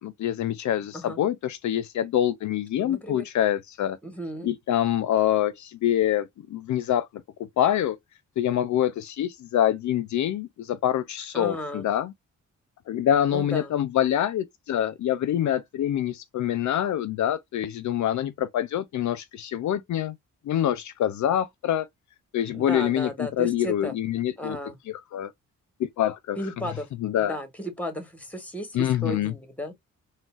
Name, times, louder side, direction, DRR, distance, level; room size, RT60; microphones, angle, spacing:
voice 1, 0.0-4.0 4.4-7.1 7.6-8.0 8.4-12.1 12.9-20.2 20.4-21.9 22.3-24.6 24.9-25.3 25.8-26.4 27.0-27.4 28.7-29.3, left 11 dB, 65° left, 0.4 m, -25 dB
voice 2, 2.8-3.2 4.0-4.5 11.3-11.8 13.3-13.7 22.5-23.9 24.4-24.7 26.4-26.9 27.1-29.7, equal, 5° left, 1.0 m, -34 dB
3.8 x 2.1 x 2.3 m
cardioid pair, 65°, 32 cm